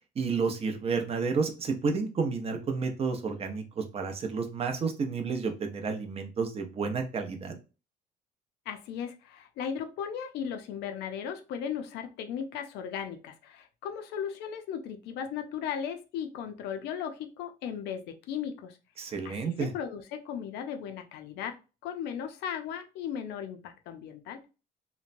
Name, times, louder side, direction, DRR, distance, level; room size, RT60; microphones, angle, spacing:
voice 1, 0.2-7.6 19.0-19.7, right 5 dB, 35° right, 4 dB, 0.6 m, -31 dB
voice 2, 8.7-21.6 21.8-24.4, left 8 dB, 80° left, 6 dB, 0.5 m, -37 dB
3.0 x 2.1 x 2.5 m, 0.31 s
cardioid pair, 110°, 17 cm